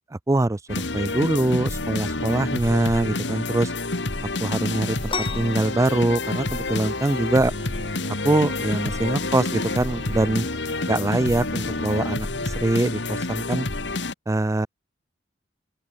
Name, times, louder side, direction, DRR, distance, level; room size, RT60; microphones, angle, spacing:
voice 1, 0.1-3.7 4.4-7.5 8.2-10.5 10.8-13.7 14.3-14.7, right 2 dB, 15° right, 0.4 m, -23 dB
sound 1, 0.7-14.1, left 2 dB, 65° left, 2.0 m, -28 dB
sound 2, 4.7-12.0, right 1 dB, 30° right, 7.5 m, -44 dB
sound 3, 5.1-12.5, left 5 dB, 30° left, 1.0 m, -39 dB
open air
head